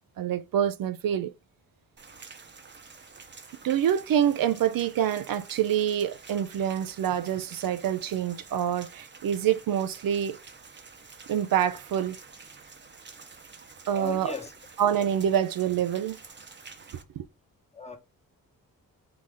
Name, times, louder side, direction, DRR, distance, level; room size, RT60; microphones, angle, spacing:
voice 1, 0.2-1.3 3.6-10.4 11.3-12.2 13.9-14.4 14.8-16.2 17.2-17.3, right 9 dB, 75° right, 0.5 m, -26 dB
Rain, 2.0-17.0, right 4 dB, 30° right, 0.8 m, -49 dB
voice 2, 13.9-14.5 17.8-18.0, left 4 dB, 20° left, 1.0 m, -37 dB
3.8 x 2.7 x 4.8 m
cardioid pair, 75°, 35 cm